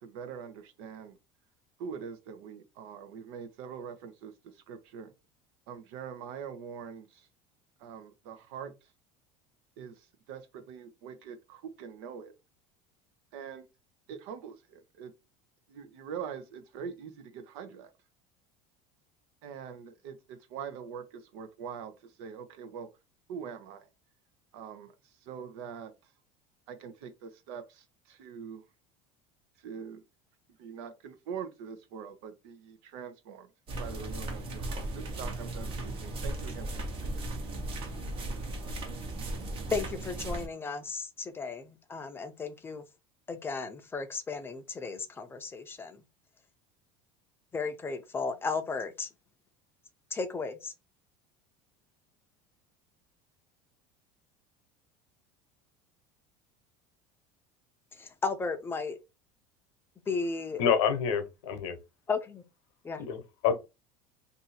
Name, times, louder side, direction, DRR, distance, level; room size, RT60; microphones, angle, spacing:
voice 1, 0.0-1.2 1.8-5.1 5.7-7.3 7.8-8.8 9.8-12.3 13.3-13.7 14.1-15.1 15.7-17.9 19.4-22.9 23.3-23.9 24.5-25.9 26.7-28.6 29.6-30.0 30.6-33.5 33.8-37.1, right 7 dB, 75° right, 0.8 m, -43 dB
sound 1, 33.7-40.5, right 2 dB, 40° right, 1.0 m, -36 dB
voice 2, 39.7-42.8 43.3-46.0 47.5-49.1 50.1-50.7 58.0-59.0 60.1-60.6 62.1-62.4 62.8-63.0, left 4 dB, 15° left, 0.5 m, -34 dB
voice 3, 60.6-61.8 63.0-63.5, left 7 dB, 85° left, 0.9 m, -27 dB
2.7 x 2.6 x 4.1 m
cardioid pair, 140°, 14 cm